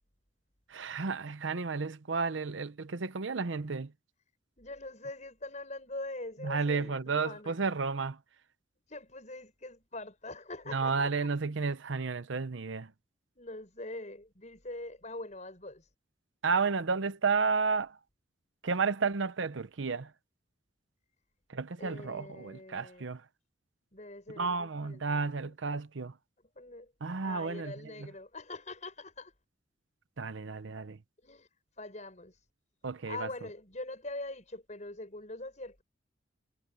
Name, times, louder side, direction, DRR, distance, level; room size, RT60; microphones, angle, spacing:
voice 1, 0.7-3.9 6.4-8.2 10.7-12.9 16.4-18.0 18.6-20.1 21.5-23.2 24.4-26.2 27.0-27.7 28.0-28.1 30.2-31.0 32.8-33.3, right 4 dB, 80° right, 0.8 m, -32 dB
voice 2, 4.6-7.6 8.9-11.3 13.4-15.9 21.8-23.1 23.9-25.5 26.5-26.9 27.2-29.3 31.2-31.5 31.8-32.4 33.1-35.8, left 2 dB, 40° left, 6.2 m, -43 dB
head